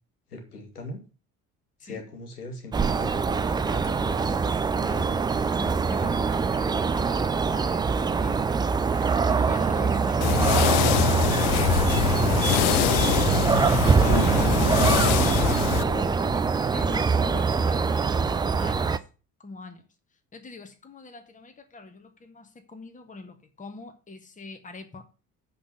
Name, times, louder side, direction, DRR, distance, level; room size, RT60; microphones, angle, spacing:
voice 1, 0.3-1.0 1.8-4.2 11.9-12.4 13.8-16.5, left 2 dB, 80° left, 2.0 m, -38 dB
sound 1, 2.7-19.0, right 5 dB, 10° right, 0.4 m, -23 dB
voice 2, 4.8-5.2 5.6-12.1 13.5-15.0 16.7-19.0 19.4-19.9 20.3-25.2, left 3 dB, 15° left, 1.4 m, -43 dB
sound 2, 10.2-15.8, left 18 dB, 50° left, 0.5 m, -25 dB
7.3 x 5.3 x 7.0 m
figure-of-eight pair, 55°, 45 cm